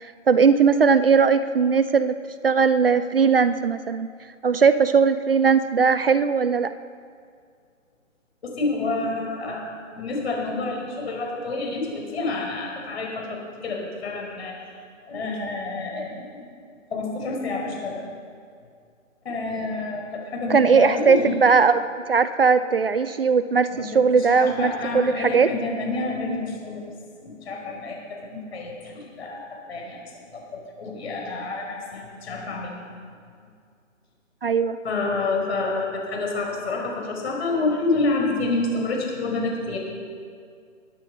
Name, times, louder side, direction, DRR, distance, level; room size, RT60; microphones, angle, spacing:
voice 1, 0.0-2.2 2.4-4.1 4.4-6.7 20.5-25.5 34.4-34.8, right 5 dB, 45° right, 13 dB, 0.5 m, -19 dB
voice 2, 8.4-14.5 15.1-16.5 16.9-18.0 19.2-21.4 23.7-26.8 27.2-28.0 28.3-29.4 29.7-30.0 30.3-32.7 34.8-39.8, left 3 dB, 50° left, 0 dB, 5.1 m, -28 dB
23.0 x 9.2 x 5.7 m, 2.2 s
hypercardioid pair, 160°, 40 cm